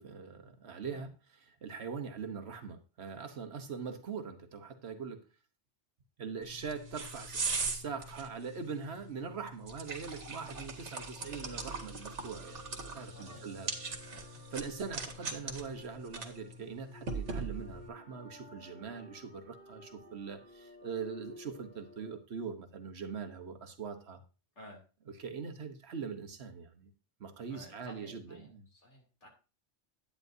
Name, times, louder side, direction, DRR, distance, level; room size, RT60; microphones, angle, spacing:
voice 1, 0.0-5.2 6.2-13.7 14.5-24.2 25.1-26.9 27.2-28.7, right 5 dB, 65° right, 6 dB, 1.3 m, -42 dB
sound 1, 6.4-17.9, right 4 dB, 85° right, 1.7 m, -41 dB
sound 2, 11.2-22.2, equal, 10° left, 2.1 m, -54 dB
voice 2, 13.1-13.4 14.0-14.2 24.6-24.8 27.5-29.3, equal, 75° left, 0 dB, 3.1 m, -54 dB
10.5 x 9.2 x 2.6 m, 0.33 s
omnidirectional pair, 1.2 m